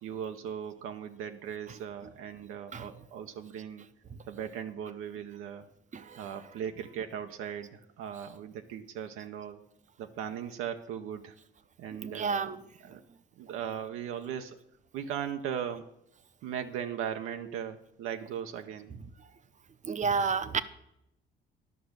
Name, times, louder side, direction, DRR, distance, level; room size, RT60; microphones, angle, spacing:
voice 1, 0.0-3.9 4.3-5.7 6.2-9.6 10.0-11.3 11.8-12.5 12.8-13.0 13.4-14.6 14.9-15.9 16.4-18.9, right 8 dB, 85° right, 0.8 m, -38 dB
voice 2, 12.0-12.6 19.9-20.6, right 5 dB, 35° right, 0.7 m, -30 dB
11.0 x 5.9 x 6.5 m
cardioid pair, 95°, 21 cm